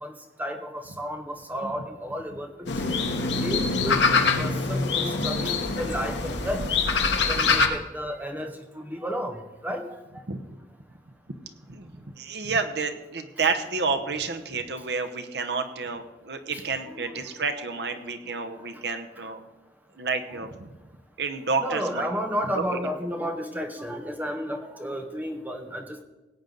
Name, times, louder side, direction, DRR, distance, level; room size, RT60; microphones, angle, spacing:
voice 1, 0.0-2.9 3.4-4.1 4.4-6.7 7.3-10.0 13.4-13.5 16.5-17.2 17.8-17.9 18.5-18.8 19.2-19.3 20.3-20.4 21.6-26.0, equal, 10° right, 5 dB, 0.8 m, -33 dB
sound 1, 2.7-7.7, left 4 dB, 80° left, 1.1 m, -24 dB
voice 2, 12.2-19.4 20.0-20.7 21.2-22.1, right 4 dB, 65° right, 7 dB, 0.9 m, -30 dB
17.5 x 8.9 x 3.9 m, 1.1 s
head